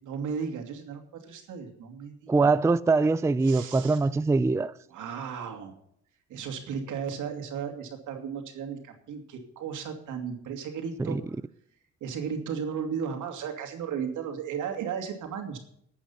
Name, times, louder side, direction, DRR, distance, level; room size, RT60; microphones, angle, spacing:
voice 1, 0.0-2.5 3.4-4.0 4.9-5.7 6.3-11.2 12.0-15.6, right 7 dB, 80° right, 2.7 m, -35 dB
voice 2, 2.3-4.7 11.1-11.2, right 3 dB, 10° right, 0.4 m, -23 dB
13.0 x 8.5 x 5.7 m
cardioid pair, 90°, 30 cm